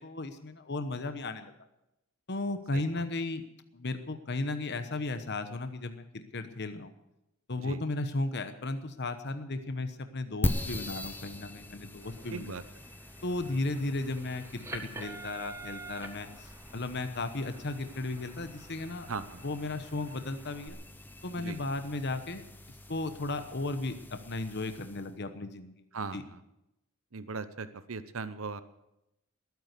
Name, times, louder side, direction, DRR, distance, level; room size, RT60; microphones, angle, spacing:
voice 1, 0.0-1.5 2.3-3.4 3.7-6.9 7.5-12.6 13.2-19.1 19.4-20.8 21.2-25.8 26.1-26.2, left 2 dB, 50° left, 9 dB, 1.1 m, -35 dB
voice 2, 2.7-3.0 7.6-7.8 12.3-12.6 13.4-13.6 19.1-19.4 21.4-21.6 25.9-26.4 27.1-28.6, right 4 dB, 65° right, 12 dB, 0.8 m, -39 dB
sound 1, 10.4-25.1, left 1 dB, 10° left, 0.9 m, -41 dB
sound 2, 12.0-20.7, right 3 dB, 15° right, 1.6 m, -49 dB
20.5 x 9.5 x 6.7 m, 0.87 s
head